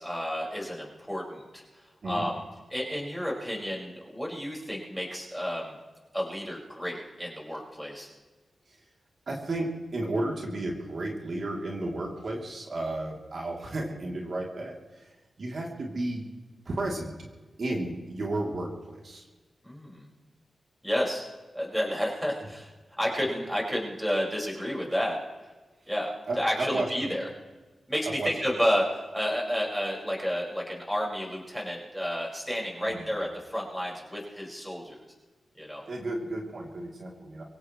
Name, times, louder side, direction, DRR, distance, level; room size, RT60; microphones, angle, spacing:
voice 1, 0.0-1.6 2.0-2.3 2.7-5.8 6.1-8.1 19.6-20.1 20.8-21.3 21.5-22.7 23.0-25.2 25.9-27.3 27.9-35.0 35.6-35.8, equal, ahead, -2 dB, 5.5 m, -31 dB
voice 2, 9.3-16.2 16.6-17.1 17.6-19.3 26.3-27.2 28.0-28.3 32.8-33.1 35.8-37.4, right 2 dB, 60° right, -1 dB, 3.1 m, -33 dB
24.5 x 16.5 x 3.2 m, 1.3 s
cardioid pair, 80°, 0 cm